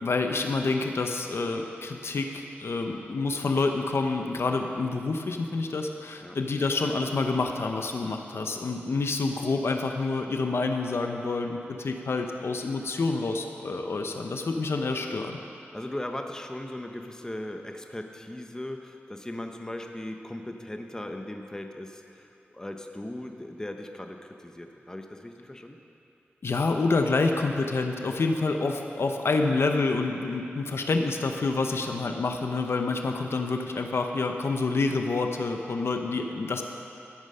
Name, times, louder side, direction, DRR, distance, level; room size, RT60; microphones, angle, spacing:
voice 1, 0.0-15.4 26.4-36.6, left 3 dB, 70° left, 4 dB, 0.8 m, -28 dB
voice 2, 15.7-25.8, left 1 dB, 15° left, 4 dB, 0.8 m, -38 dB
13.0 x 8.9 x 5.5 m, 2.8 s
wide cardioid pair, 75°, 4 cm